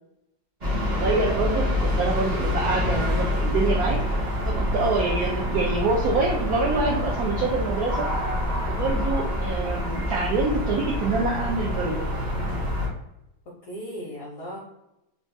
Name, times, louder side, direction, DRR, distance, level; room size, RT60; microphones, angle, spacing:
sound 1, 0.6-12.9, left 1 dB, 40° right, 0.6 m, -26 dB
voice 1, 0.9-4.0 4.4-8.1 8.7-12.1, right 3 dB, 80° right, -1 dB, 0.8 m, -26 dB
voice 2, 2.9-3.5 8.8-9.1 13.5-14.6, equal, 70° left, -3 dB, 0.8 m, -38 dB
3.5 x 2.3 x 2.5 m, 0.87 s
omnidirectional pair, 2.1 m